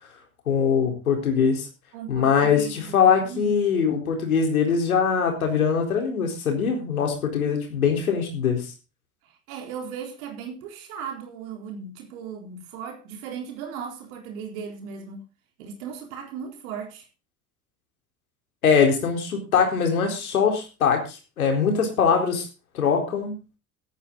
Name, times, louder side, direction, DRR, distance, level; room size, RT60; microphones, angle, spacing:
voice 1, 0.5-1.7 2.1-8.7 18.6-22.5 22.7-23.4, left 6 dB, 85° left, 4.2 m, -22 dB
voice 2, 1.9-3.6 9.2-15.3 15.6-17.1, right 7 dB, 75° right, 4.0 m, -37 dB
13.5 x 12.5 x 3.9 m
hypercardioid pair, 55°, 41 cm